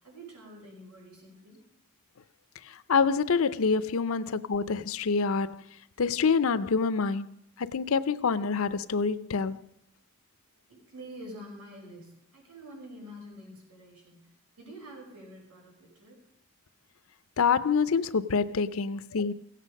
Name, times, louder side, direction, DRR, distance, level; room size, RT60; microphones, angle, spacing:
voice 1, 0.0-1.6 10.7-14.3 14.6-16.2, equal, 85° right, 5.7 m, -47 dB
voice 2, 2.7-5.6 6.0-9.6 17.4-19.3, left 5 dB, 70° left, 0.6 m, -26 dB
16.5 x 8.4 x 5.2 m
head